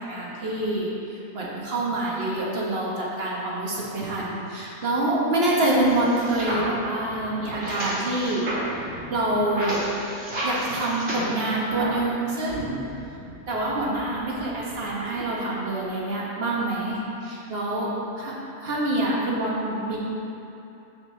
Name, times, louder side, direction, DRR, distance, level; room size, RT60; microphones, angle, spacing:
voice 1, 0.0-8.5 8.7-9.8 10.4-12.7 13.5-17.9 18.2-18.3 18.6-20.0, right 1 dB, 45° right, -5 dB, 1.3 m, -26 dB
sound 1, 5.9-12.1 12.4-15.3, right 1 dB, 60° right, 1.6 m, -33 dB
7.3 x 6.4 x 3.3 m, 2.8 s
omnidirectional pair, 1.6 m